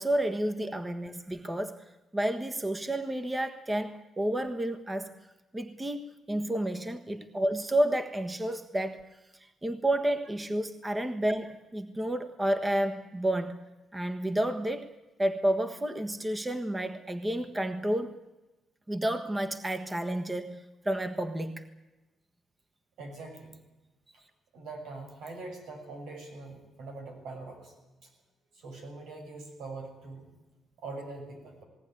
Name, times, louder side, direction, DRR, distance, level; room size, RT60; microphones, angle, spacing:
voice 1, 0.0-1.8 2.1-5.1 5.5-9.0 9.6-13.6 13.9-14.9 15.2-18.2 18.9-21.7, right 1 dB, 15° right, 7 dB, 1.5 m, -30 dB
voice 2, 23.0-23.6 24.5-27.7 28.0-28.1 28.5-30.3 30.8-31.6, right 3 dB, 85° right, 3 dB, 7.6 m, -43 dB
19.5 x 18.0 x 9.8 m, 1.1 s
cardioid pair, 90°, 0 cm